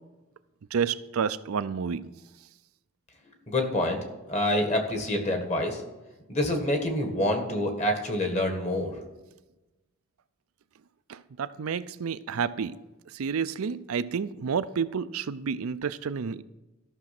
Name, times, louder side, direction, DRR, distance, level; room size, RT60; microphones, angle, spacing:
voice 1, 0.7-2.1 11.1-12.8 13.1-16.4, right 6 dB, 85° right, 14 dB, 0.5 m, -30 dB
voice 2, 3.5-4.0 4.3-5.8 6.3-8.9, left 1 dB, 30° left, 4 dB, 1.6 m, -27 dB
13.5 x 6.2 x 5.9 m, 1.1 s
head